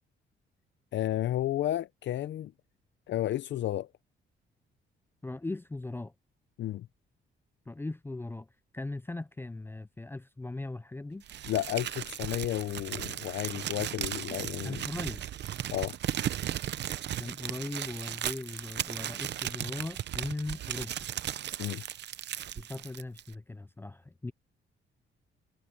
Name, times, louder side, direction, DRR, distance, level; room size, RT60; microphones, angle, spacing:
voice 1, 0.9-2.5 3.1-3.9 6.6-6.9 11.4-14.8 15.7-16.0 21.6-21.8, left 13 dB, 70° left, 0.7 m, -32 dB
voice 2, 5.2-6.1 7.7-8.5 8.7-11.2 14.6-15.2 17.2-20.9 22.6-24.3, left 2 dB, 10° left, 0.5 m, -39 dB
Crumpling crinkling, 11.3-23.3, right 11 dB, 60° right, 0.8 m, -36 dB
cardioid pair, 90°, 20 cm